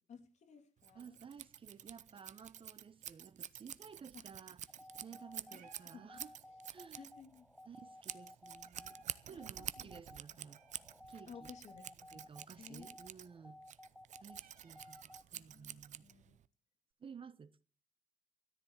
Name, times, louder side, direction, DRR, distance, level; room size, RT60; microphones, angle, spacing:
voice 1, 0.1-1.2 4.1-4.3 5.1-5.2 5.5-6.2 6.9-7.5 9.3-10.0 11.3-12.3 12.6-12.9 14.7-16.4, left 6 dB, 60° left, 2.6 m, -57 dB
Scissors, 0.8-16.4, right 10 dB, 65° right, 0.7 m, -49 dB
voice 2, 0.9-6.3 6.7-7.0 7.6-10.6 11.1-11.5 12.1-13.6 14.2-16.1 17.0-17.6, right 6 dB, 40° right, 0.9 m, -55 dB
sound 1, 4.7-15.2, left 1 dB, 5° left, 0.7 m, -58 dB
Meow, 5.4-15.7, right 11 dB, 80° right, 1.2 m, -71 dB
13.5 x 10.5 x 7.2 m
cardioid pair, 95°, 13 cm